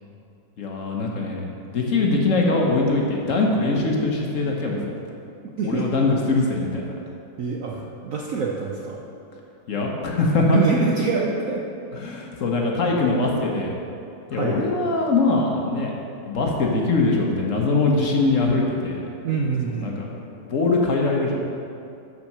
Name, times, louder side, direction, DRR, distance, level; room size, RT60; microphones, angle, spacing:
voice 1, 0.6-1.4 1.7-4.8 5.6-6.9 9.7-10.6 11.9-13.7 14.3-15.9 16.3-19.0 19.8-20.1 20.5-21.4, left 3 dB, 55° left, -1 dB, 1.0 m, -22 dB
voice 2, 5.4-5.9 7.4-9.0 10.5-11.7 14.3-14.7 19.2-20.0, right 5 dB, 75° right, -1 dB, 0.7 m, -25 dB
6.6 x 5.7 x 6.6 m, 2.6 s
omnidirectional pair, 2.1 m